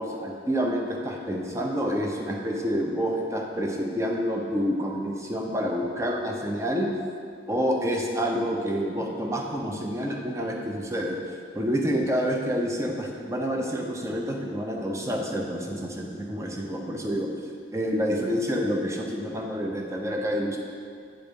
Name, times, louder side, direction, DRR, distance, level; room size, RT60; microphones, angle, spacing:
voice 1, 0.0-6.9 7.5-11.2 11.5-17.3 17.7-20.6, equal, 15° right, 1 dB, 0.7 m, -28 dB
8.8 x 4.0 x 5.2 m, 2.3 s
head